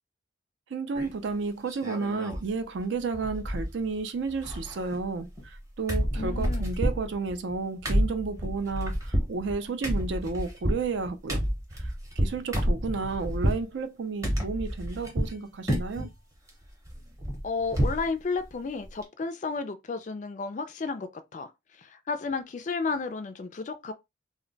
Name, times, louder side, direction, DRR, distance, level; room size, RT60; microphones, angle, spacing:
voice 1, 0.7-11.4 11.7-16.1, right 4 dB, 65° right, 0.4 m, -32 dB
sound 1, 0.9-1.3 1.7-2.5 2.8-2.9 3.1-4.0 4.2-5.6 5.9-13.7 14.2-15.4 15.7-16.1 16.5-18.1 18.4-18.5 18.8-19.0, equal, 15° right, 0.7 m, -29 dB
voice 2, 6.2-6.7 17.4-21.5 21.8-23.9, left 4 dB, 40° left, 0.3 m, -32 dB
2.2 x 2.1 x 3.8 m
head